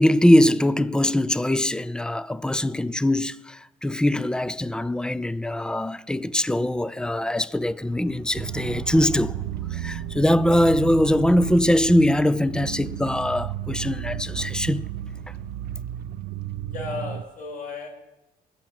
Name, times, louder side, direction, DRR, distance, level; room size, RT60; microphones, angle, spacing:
voice 1, 0.0-9.4 9.7-14.9, left 1 dB, 5° left, 0.5 m, -22 dB
sound 1, 8.3-17.2, right 11 dB, 70° right, 0.6 m, -33 dB
voice 2, 16.7-17.9, left 4 dB, 55° left, 6.6 m, -34 dB
19.5 x 7.3 x 7.6 m
cardioid pair, 110°, 17 cm